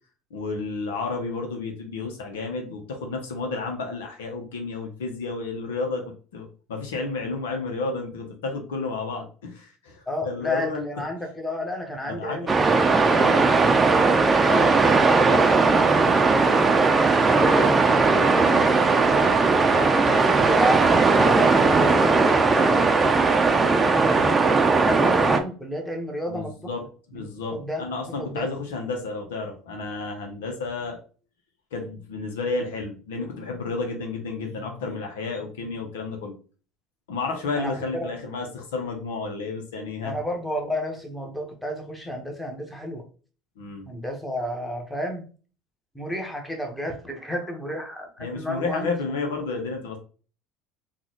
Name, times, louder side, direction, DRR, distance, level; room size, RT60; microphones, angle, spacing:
voice 1, 0.3-10.9 12.0-12.5 13.2-13.5 14.2-14.3 19.7-20.3 26.3-26.8 27.1-31.0 31.7-36.3 37.1-40.1 43.6-43.8 48.2-50.0, left 3 dB, 85° left, 3 dB, 0.8 m, -31 dB
voice 2, 10.1-13.5 14.4-19.4 20.1-20.8 21.2-24.5 24.8-26.5 27.1-27.2 27.5-27.8 28.2-28.5 37.5-38.1 40.0-43.0 43.9-45.2 45.9-49.2, equal, 10° left, 2 dB, 1.2 m, -31 dB
sound 1, 12.5-25.4, right 4 dB, 25° right, 0.6 m, -18 dB
3.8 x 2.4 x 3.0 m, 0.38 s
hypercardioid pair, 75°, 0 cm